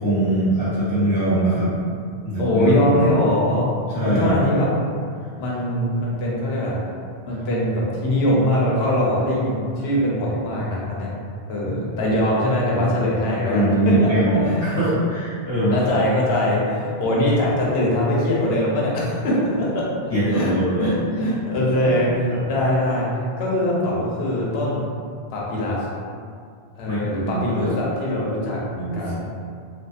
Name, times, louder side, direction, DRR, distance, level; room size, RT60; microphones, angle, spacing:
voice 1, 0.0-1.7 2.2-3.1 3.9-4.4 13.4-15.7 20.1-20.9 21.5-21.9 22.3-22.4 26.8-27.0 27.2-27.7 28.7-29.0, right 1 dB, 25° left, -15 dB, 1.0 m, -22 dB
voice 2, 2.4-3.7 4.0-4.7 5.4-6.8 7.2-11.1 11.5-14.1 14.4-14.8 15.7-19.8 20.3-23.1 23.4-24.8 25.3-25.9 26.8-28.6 28.9-29.3, left 1 dB, 85° left, -5 dB, 0.9 m, -22 dB
2.6 x 2.3 x 2.3 m, 2.2 s
omnidirectional pair, 1.0 m